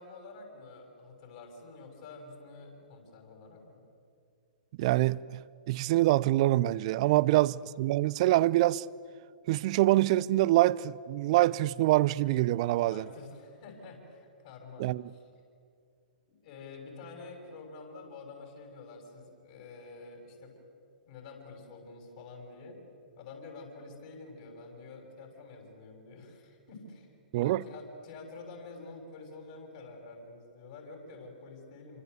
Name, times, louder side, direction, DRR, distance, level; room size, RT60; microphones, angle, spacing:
voice 1, 0.0-3.8 7.3-7.5 12.8-15.3 16.3-20.5 21.1-22.8 23.2-32.0, left 3 dB, 50° left, 6.9 m, -48 dB
voice 2, 4.8-5.2 5.7-8.8 9.5-13.0 14.8-15.0 27.3-27.6, right 16 dB, 45° right, 0.6 m, -25 dB
27.0 x 25.5 x 8.2 m
figure-of-eight pair, 115°, 5 cm